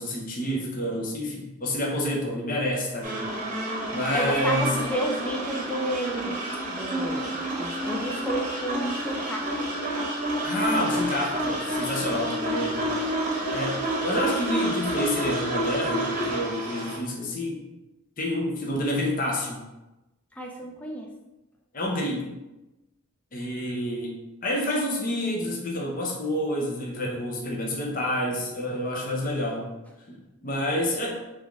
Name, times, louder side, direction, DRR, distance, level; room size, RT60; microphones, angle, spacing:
voice 1, 0.0-3.2 3.9-4.8 10.4-12.8 13.5-17.6 18.2-19.6 21.7-22.3 23.3-24.1 24.4-29.7 30.1-31.2, left 1 dB, 40° left, -1 dB, 0.8 m, -28 dB
sound 1, 3.0-17.0, right 1 dB, 35° right, 0.9 m, -29 dB
voice 2, 4.1-6.4 6.7-9.4 20.4-21.1, right 1 dB, 5° left, 0 dB, 0.4 m, -31 dB
3.6 x 3.4 x 3.6 m, 1.0 s
head